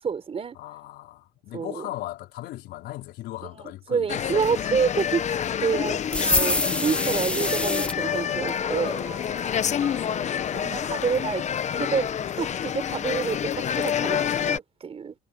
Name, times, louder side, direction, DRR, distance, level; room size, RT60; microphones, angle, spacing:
voice 1, 0.0-0.6 1.5-1.8 3.4-3.6 3.9-5.2 5.6-9.2 10.3-11.4 11.7-15.1, right 6 dB, 35° right, 4.3 m, -28 dB
voice 2, 0.5-4.7 9.8-10.7, left 15 dB, 80° left, 4.5 m, -39 dB
sound 1, 4.1-14.6, left 8 dB, 45° left, 1.0 m, -28 dB
sound 2, 6.1-8.0, left 1 dB, 5° left, 1.0 m, -25 dB
sound 3, 7.6-11.6, right 3 dB, 20° right, 6.3 m, -46 dB
cardioid pair, 110°, 17 cm